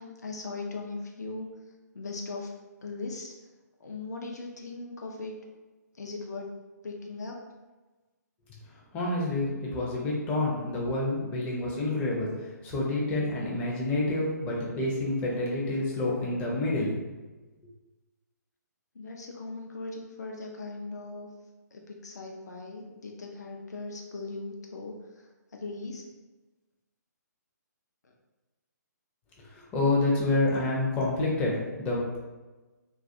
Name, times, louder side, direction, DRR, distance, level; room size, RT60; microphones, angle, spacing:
voice 1, 0.0-1.5 1.9-2.5 2.8-3.3 3.8-5.3 6.0-6.5 6.8-7.4 18.9-21.3 21.7-24.9 25.5-26.0, left 3 dB, 65° left, 0 dB, 0.5 m, -39 dB
voice 2, 8.9-12.3 12.6-16.9 29.7-32.2, left 2 dB, 15° left, -4 dB, 0.5 m, -28 dB
2.3 x 2.3 x 2.6 m, 1.2 s
figure-of-eight pair, 135°, 10 cm